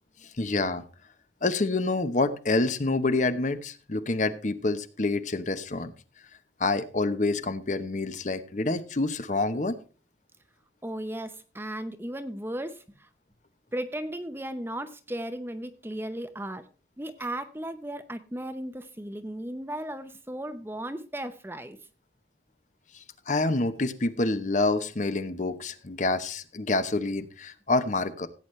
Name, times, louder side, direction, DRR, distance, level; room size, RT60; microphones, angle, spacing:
voice 1, 0.4-0.8 1.4-5.9 6.6-9.8 23.3-28.3, left 2 dB, 40° left, 11 dB, 0.9 m, -27 dB
voice 2, 10.8-13.1 13.7-16.7 17.0-21.8, right 1 dB, 10° right, 10 dB, 0.8 m, -36 dB
16.0 x 8.9 x 3.2 m, 0.36 s
head